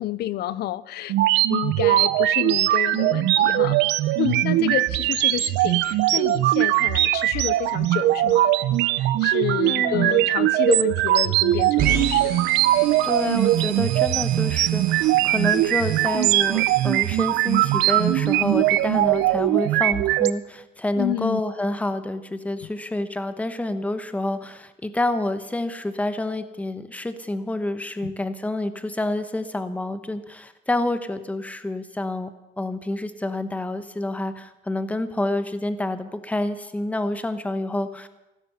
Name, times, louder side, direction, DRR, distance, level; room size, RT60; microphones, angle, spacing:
voice 1, 0.0-3.8 4.2-8.5 9.0-12.5 21.0-21.4 28.0-28.1, left 13 dB, 65° left, 18 dB, 0.5 m, -29 dB
sound 1, 1.1-20.3, right 15 dB, 85° right, 0.6 m, -21 dB
voice 2, 9.6-10.3 13.0-32.3 32.6-38.1, left 1 dB, 10° left, 10 dB, 0.9 m, -28 dB
sound 2, 11.8-19.4, right 6 dB, 55° right, 4.5 m, -33 dB
15.5 x 13.5 x 5.6 m, 0.97 s
cardioid pair, 140°, 18 cm